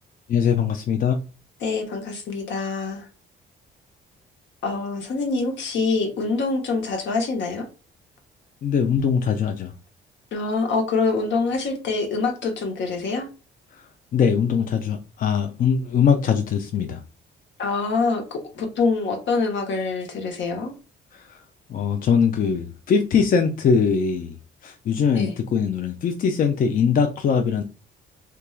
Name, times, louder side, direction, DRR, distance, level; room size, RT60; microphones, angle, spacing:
voice 1, 0.3-1.2 8.6-9.7 14.1-17.0 21.1-21.4 21.7-24.4 24.6-27.6, left 6 dB, 45° left, 0.4 m, -21 dB
voice 2, 1.6-3.1 4.6-7.7 10.3-13.3 17.6-20.7 25.2-25.3, left 4 dB, 65° left, 0.8 m, -25 dB
3.0 x 2.2 x 2.2 m
cardioid pair, 90°, 20 cm